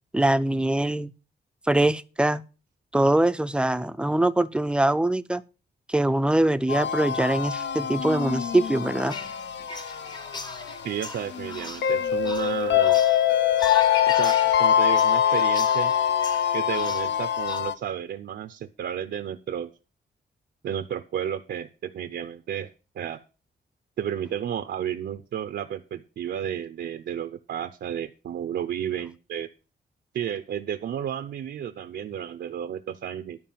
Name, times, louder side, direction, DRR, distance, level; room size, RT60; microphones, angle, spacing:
voice 1, 0.1-1.1 1.7-2.4 2.9-5.4 5.9-9.2, right 1 dB, 5° right, 0.4 m, -23 dB
sound 1, 6.7-17.7, left 9 dB, 80° left, 0.7 m, -24 dB
sound 2, 9.1-17.6, left 3 dB, 25° left, 0.8 m, -39 dB
voice 2, 10.8-13.0 14.1-15.9 16.5-19.7 20.6-22.7 22.9-23.2 24.0-29.5 30.1-33.4, right 9 dB, 80° right, 0.7 m, -32 dB
11.5 x 4.7 x 7.4 m
wide cardioid pair, 170°, 18 cm